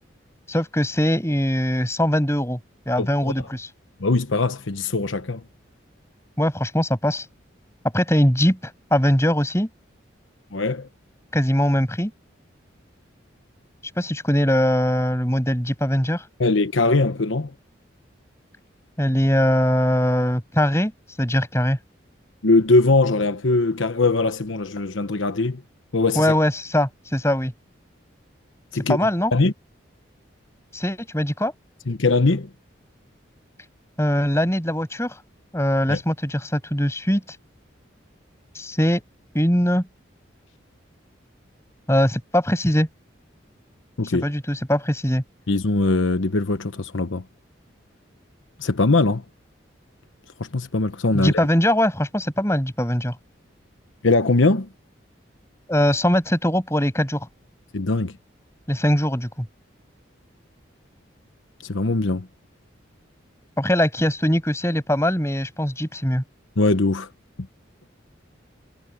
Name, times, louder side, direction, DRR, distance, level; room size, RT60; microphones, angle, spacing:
voice 1, 0.5-2.6 2.9-3.7 6.4-7.3 7.9-9.7 11.3-12.1 14.0-16.2 19.0-20.9 21.2-21.8 26.2-27.5 28.9-29.3 30.7-31.5 34.0-35.2 35.5-37.2 38.6-39.0 39.3-39.9 41.9-42.9 44.1-45.2 51.1-53.2 55.7-57.3 58.7-59.5 63.6-66.2, equal, 15° left, 7.3 m, -21 dB
voice 2, 3.0-3.3 4.0-5.4 10.5-10.9 16.4-17.5 22.4-25.6 25.9-26.4 28.7-29.0 29.3-29.5 31.9-32.5 35.9-36.0 44.0-44.2 45.5-47.2 48.6-49.2 50.4-51.3 54.0-54.7 57.7-58.1 61.6-62.3 66.6-67.1, left 3 dB, 80° left, 1.1 m, -21 dB
head